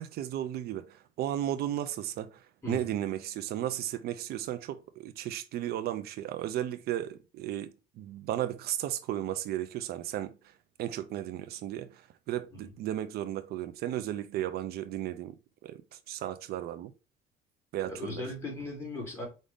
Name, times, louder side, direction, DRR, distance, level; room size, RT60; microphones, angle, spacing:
voice 1, 0.0-10.5 10.8-15.3 15.6-16.9 17.7-18.2, right 12 dB, 70° right, 0.4 m, -35 dB
voice 2, 2.6-2.9 12.5-12.6 17.9-19.2, left 2 dB, 15° left, 2.4 m, -38 dB
5.1 x 2.6 x 3.4 m
cardioid pair, 110°, 17 cm